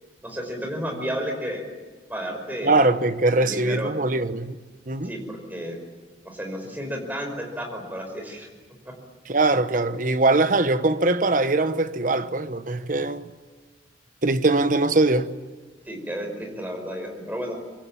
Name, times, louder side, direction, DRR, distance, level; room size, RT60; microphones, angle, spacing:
voice 1, 0.2-1.6 2.1-2.9 3.4-3.9 5.0-5.8 6.2-8.5 8.9-9.0 15.9-17.5, equal, 10° right, 5.3 m, -32 dB
voice 2, 2.6-4.6 4.9-5.1 9.3-13.3 14.2-15.3, right 2 dB, 45° right, 1.1 m, -22 dB
25.5 x 23.0 x 8.8 m
head